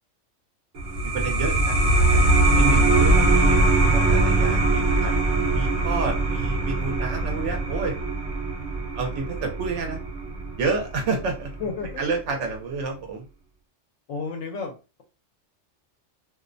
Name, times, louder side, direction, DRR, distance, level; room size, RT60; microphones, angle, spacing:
sound 1, 0.7-11.9, right 2 dB, 50° right, 0.8 m, -22 dB
voice 1, 1.0-2.2 2.5-5.1 5.5-7.9 9.0-10.0 10.6-11.5 12.0-13.3, right 4 dB, 75° right, 2 dB, 0.9 m, -29 dB
voice 2, 11.6-12.0 14.1-15.0, left 4 dB, 80° left, 3 dB, 0.9 m, -32 dB
2.4 x 2.0 x 2.5 m, 0.30 s
omnidirectional pair, 1.3 m